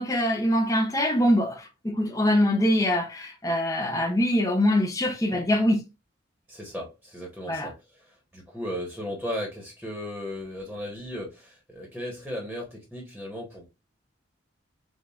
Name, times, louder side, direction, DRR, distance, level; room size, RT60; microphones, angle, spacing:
voice 1, 0.0-5.8 7.5-7.7, left 1 dB, 15° left, 0.6 m, -23 dB
voice 2, 6.5-13.7, equal, ahead, 1.1 m, -36 dB
7.3 x 2.4 x 2.3 m
head